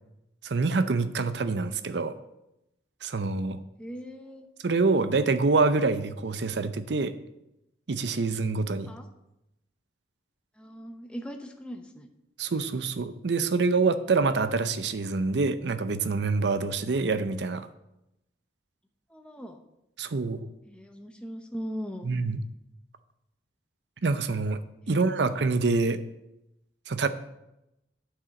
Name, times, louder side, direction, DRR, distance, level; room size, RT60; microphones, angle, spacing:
voice 1, 0.4-2.2 3.0-3.6 4.6-7.2 7.9-8.9 12.4-17.7 20.0-20.5 22.0-22.4 24.0-24.6 24.9-26.0 26.9-27.1, right 3 dB, 65° right, 12 dB, 0.6 m, -26 dB
voice 2, 3.8-4.5 8.9-9.1 10.6-12.1 19.1-19.6 20.7-22.1 24.8-25.0, equal, 5° left, 4 dB, 0.7 m, -39 dB
8.9 x 4.9 x 6.5 m, 0.88 s
head